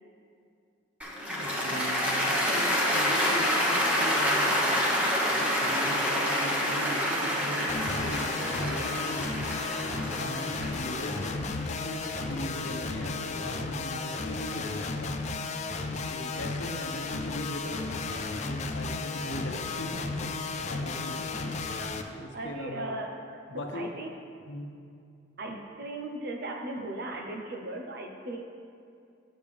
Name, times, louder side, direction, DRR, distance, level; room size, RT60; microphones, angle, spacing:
Cheering / Applause, 1.0-13.2, equal, 5° right, 1.2 m, -28 dB
voice 1, 1.3-4.8 5.3-9.3 10.0-15.1 16.1-21.3 22.1-23.0 23.5-23.8 24.5-24.7, equal, 70° left, 2 dB, 0.9 m, -39 dB
sound 1, 7.7-22.0, left 3 dB, 35° left, 0.4 m, -34 dB
voice 2, 22.3-23.1 23.5-24.1 25.4-28.4, right 2 dB, 55° right, 3 dB, 0.9 m, -37 dB
10.0 x 7.4 x 3.5 m, 2.4 s
head